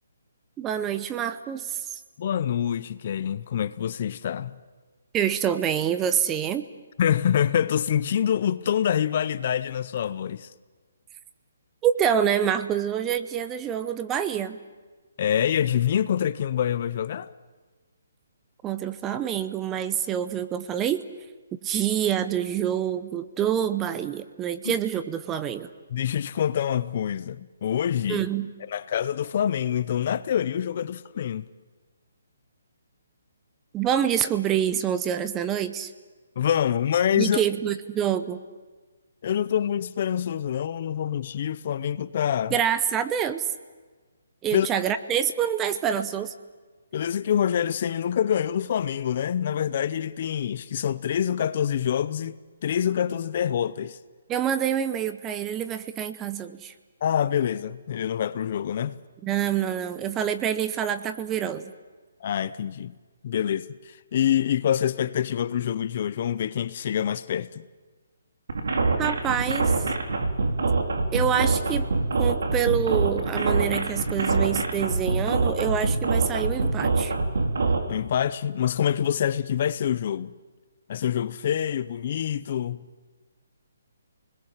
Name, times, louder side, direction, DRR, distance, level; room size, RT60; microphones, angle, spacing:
voice 1, 0.6-2.0 5.1-6.6 11.8-14.6 18.6-21.0 21.6-25.7 28.1-28.5 33.7-35.9 37.2-38.4 42.5-43.5 44.4-46.3 54.3-56.7 59.2-61.7 69.0-69.8 71.1-71.8 72.2-77.1, right 9 dB, 10° right, 0.7 m, -26 dB
voice 2, 2.2-4.5 7.0-10.5 15.2-17.3 24.6-24.8 25.9-28.3 28.7-31.5 36.4-37.4 39.2-42.5 44.5-44.7 46.9-54.0 57.0-58.9 62.2-62.9 63.2-67.6 77.9-80.3 80.9-82.9, left 9 dB, 35° left, 0.7 m, -26 dB
sound 1, 68.5-77.8, right 3 dB, 70° right, 3.8 m, -24 dB
28.5 x 21.0 x 7.5 m
hypercardioid pair, 170°, 0 cm